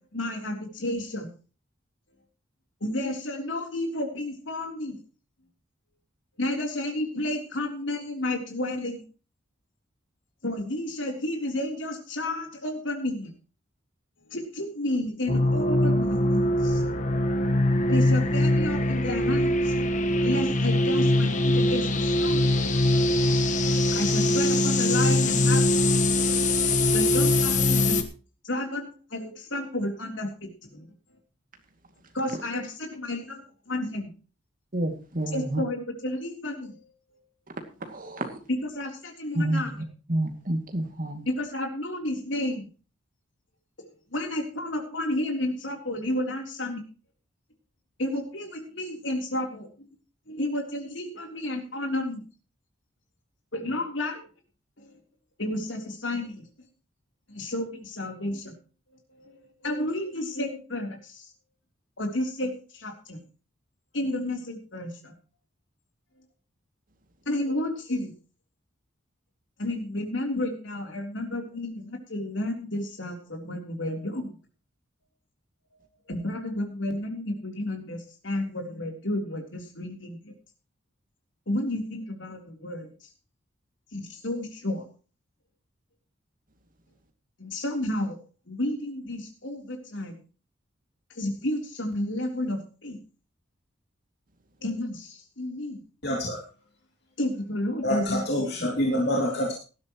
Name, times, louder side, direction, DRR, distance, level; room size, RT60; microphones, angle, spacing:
voice 1, 0.1-1.3 2.8-5.0 6.4-9.0 10.4-13.3 14.3-16.8 17.9-19.8 20.2-22.9 23.9-25.7 26.9-28.0 28.4-30.9 32.1-34.1 35.3-36.8 38.7-39.7 41.3-42.7 44.1-46.8 48.0-49.9 50.3-52.2 53.5-54.2 54.8-55.0 55.4-56.5 57.3-58.5 59.1-61.3 62.0-63.2 63.9-65.1 67.3-68.1 69.6-74.4 76.1-80.3 81.5-82.9 83.9-84.9 87.4-88.2 88.5-90.2 91.1-93.0 94.6-95.8 97.2-98.2 98.5-98.7, left 1 dB, 70° left, 3.6 m, -31 dB
sound 1, 15.3-28.0, left 1 dB, 40° left, 1.3 m, -22 dB
voice 2, 34.7-35.6 37.8-38.4 39.3-41.2, right 1 dB, 45° right, 2.4 m, -29 dB
voice 3, 96.0-96.4 97.8-99.5, equal, 55° left, 2.9 m, -26 dB
18.0 x 12.5 x 3.1 m
head